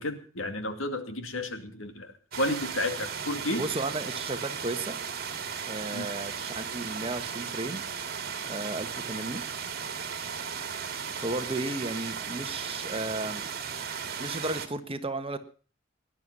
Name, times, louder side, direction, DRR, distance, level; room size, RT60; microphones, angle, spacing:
voice 1, 0.0-3.7 5.9-6.1, left 1 dB, 85° left, 8 dB, 2.4 m, -32 dB
sound 1, 2.3-14.7, right 7 dB, 50° right, 2.2 m, -36 dB
voice 2, 3.6-5.0 5.7-7.8 8.5-9.4 11.2-13.4 14.2-15.4, right 2 dB, 30° right, 9 dB, 1.4 m, -34 dB
19.0 x 11.5 x 5.4 m, 0.40 s
head